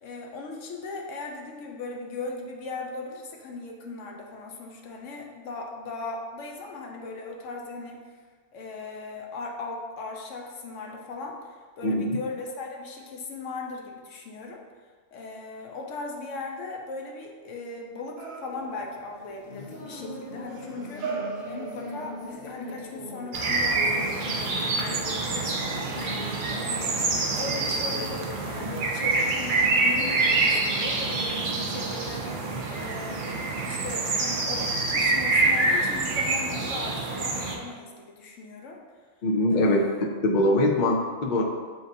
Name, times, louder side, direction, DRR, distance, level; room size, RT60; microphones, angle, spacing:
voice 1, 0.0-8.0 8.5-14.6 15.1-21.1 21.4-38.8 39.5-40.0, left 3 dB, 75° left, 0 dB, 1.0 m, -38 dB
voice 2, 11.8-12.2 39.2-39.8 40.2-41.4, left 1 dB, 55° left, 0 dB, 0.5 m, -22 dB
sound 1, 18.2-19.0 20.5-22.4 23.8-23.9, right 6 dB, 80° right, 1.1 m, -37 dB
sound 2, 18.5-36.9, left 2 dB, 90° left, 1.3 m, -41 dB
sound 3, 23.3-37.6, right 3 dB, 55° right, 0.6 m, -26 dB
7.5 x 2.6 x 2.6 m, 1.5 s
omnidirectional pair, 1.3 m